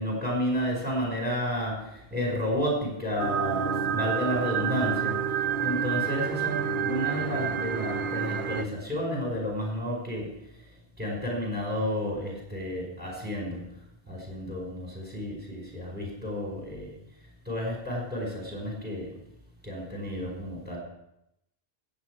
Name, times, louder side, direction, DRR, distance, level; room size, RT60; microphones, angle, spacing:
voice 1, 0.0-10.3 11.0-13.7 14.1-16.9 17.5-19.1 19.6-20.8, equal, 10° right, -2 dB, 5.2 m, -31 dB
sound 1, 3.2-8.7, right 7 dB, 55° right, 0.7 m, -29 dB
19.5 x 8.2 x 4.9 m, 0.81 s
omnidirectional pair, 1.1 m